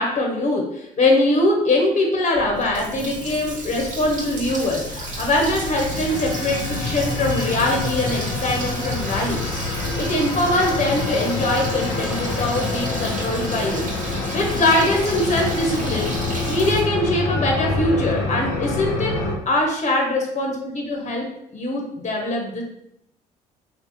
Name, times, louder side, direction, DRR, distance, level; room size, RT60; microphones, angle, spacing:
voice 1, 0.0-13.8 14.3-16.1 16.5-19.2 19.5-22.6, left 1 dB, 35° left, 1 dB, 0.9 m, -22 dB
Water tap faucet, 2.3-16.8, right 2 dB, 40° right, 1.5 m, -33 dB
sound 1, 3.6-19.3, left 3 dB, 65° left, 0.7 m, -27 dB
2.8 x 2.7 x 3.5 m, 0.78 s
hypercardioid pair, 50°, 20 cm